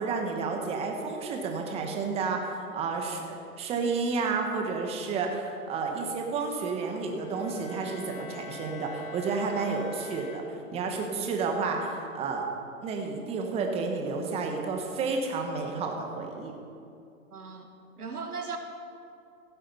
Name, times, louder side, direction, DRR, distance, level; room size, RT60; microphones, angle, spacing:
voice 1, 0.0-12.4 12.8-16.5, right 4 dB, 15° right, 2 dB, 1.2 m, -31 dB
Bowed string instrument, 7.2-10.9, left 7 dB, 25° left, 0.7 m, -45 dB
voice 2, 17.3-17.7 18.0-18.6, right 5 dB, 90° right, 4 dB, 1.7 m, -37 dB
16.0 x 7.5 x 5.4 m, 2.5 s
hypercardioid pair, 140°, 44 cm